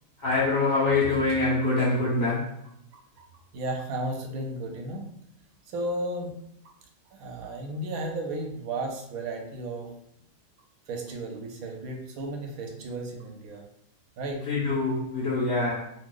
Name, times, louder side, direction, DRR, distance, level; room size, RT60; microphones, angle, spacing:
voice 1, 0.2-2.5 14.4-15.8, left 3 dB, 30° left, -7 dB, 1.4 m, -25 dB
voice 2, 3.5-5.1 5.7-6.3 7.1-9.9 10.9-13.6 14.2-14.5, right 1 dB, 85° right, 2 dB, 1.1 m, -34 dB
2.7 x 2.0 x 3.7 m, 0.74 s
omnidirectional pair, 1.5 m